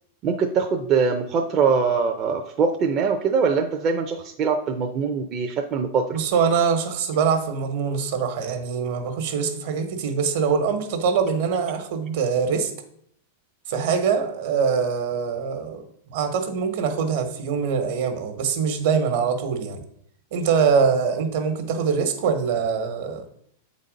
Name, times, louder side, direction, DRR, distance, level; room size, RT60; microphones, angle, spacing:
voice 1, 0.2-6.0, right 5 dB, 30° right, 2 dB, 0.6 m, -22 dB
voice 2, 6.1-12.7 13.7-19.8 20.3-23.2, right 6 dB, 60° right, 7 dB, 1.3 m, -23 dB
8.1 x 4.1 x 5.2 m, 0.68 s
supercardioid pair, 160°, 0 cm